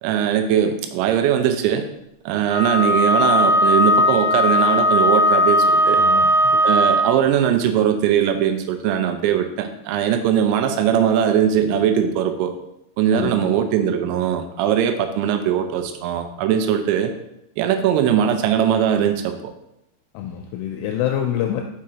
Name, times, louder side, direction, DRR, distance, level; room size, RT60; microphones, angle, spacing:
voice 1, 0.0-1.8 2.3-6.0 6.6-12.5 13.0-17.1 17.6-19.3, right 9 dB, 85° right, 6 dB, 3.2 m, -20 dB
Wind instrument woodwind instrument, 2.5-7.2, equal, 65° right, 1.3 m, -17 dB
voice 2, 6.0-6.6 13.1-13.5 20.1-21.6, left 10 dB, 85° left, 3 dB, 2.9 m, -26 dB
6.2 x 6.1 x 2.8 m, 0.80 s
omnidirectional pair, 5.9 m